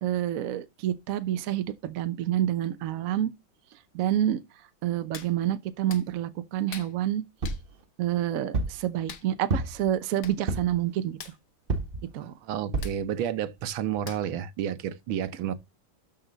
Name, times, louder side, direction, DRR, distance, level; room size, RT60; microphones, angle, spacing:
voice 1, 0.0-3.3 3.9-4.4 4.8-7.2 8.0-11.2 12.1-12.3, right 11 dB, 60° right, 0.9 m, -28 dB
Hands, 5.1-5.3 5.9-6.1 6.7-6.9 7.4-7.6 9.1-9.3 9.9-10.0 10.2-10.4 10.7-10.8 11.1-11.4 12.8-13.0 14.1-14.4 14.8-14.9, left 8 dB, 60° left, 1.5 m, -42 dB
sound 1, 7.4-7.7 8.5-8.8 9.5-9.9 10.5-10.8 11.7-12.0 12.7-13.0 13.6-13.7 14.0-14.1, right 3 dB, 35° right, 1.1 m, -29 dB
voice 2, 12.2-15.5, right 9 dB, 85° right, 1.6 m, -31 dB
12.5 x 4.3 x 3.9 m
omnidirectional pair, 2.1 m